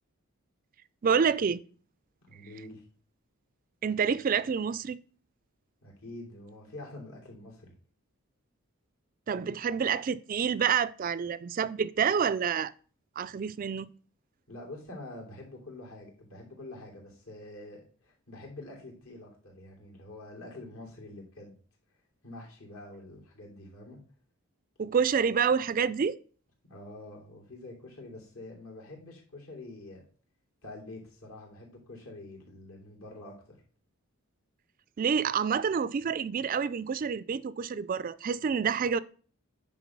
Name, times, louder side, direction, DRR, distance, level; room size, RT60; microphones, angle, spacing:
voice 1, 1.0-1.6 3.8-5.0 9.3-12.7 13.2-13.9 24.8-26.2 35.0-39.0, right 6 dB, 40° right, 0.3 m, -28 dB
voice 2, 2.3-2.8 5.8-7.7 9.3-9.5 14.5-21.6 22.2-24.0 26.7-30.0 30.6-33.6, left 2 dB, 70° left, 3.2 m, -46 dB
9.7 x 3.8 x 6.0 m
head